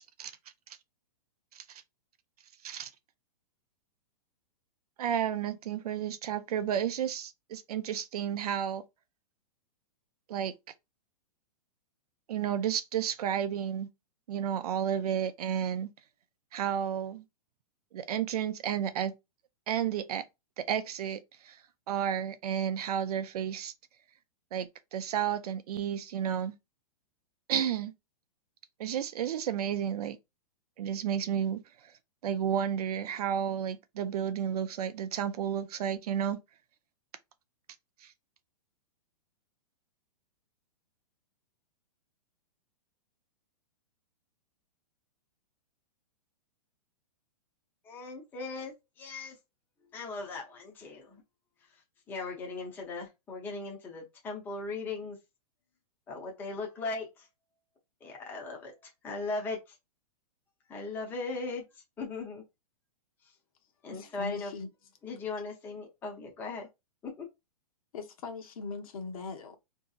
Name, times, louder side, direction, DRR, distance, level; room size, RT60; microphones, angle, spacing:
voice 1, 5.0-8.8 10.3-10.5 12.3-13.9 14.3-15.9 16.5-17.2 17.9-19.1 19.7-20.2 20.6-21.6 21.9-23.7 24.5-26.5 27.5-27.9 28.8-30.2 30.8-31.6 32.2-36.4, right 9 dB, 70° right, 0.5 m, -32 dB
voice 2, 47.8-49.4 49.9-51.2 52.1-55.2 56.1-57.3 58.0-58.7 59.0-59.6 60.7-61.6 62.0-62.4 63.8-64.5 65.0-66.7 67.0-67.3, left 3 dB, 10° left, 0.6 m, -38 dB
voice 3, 63.9-64.7 67.9-69.6, left 4 dB, 60° left, 0.8 m, -40 dB
3.9 x 2.7 x 2.3 m
hypercardioid pair, 160°, 20 cm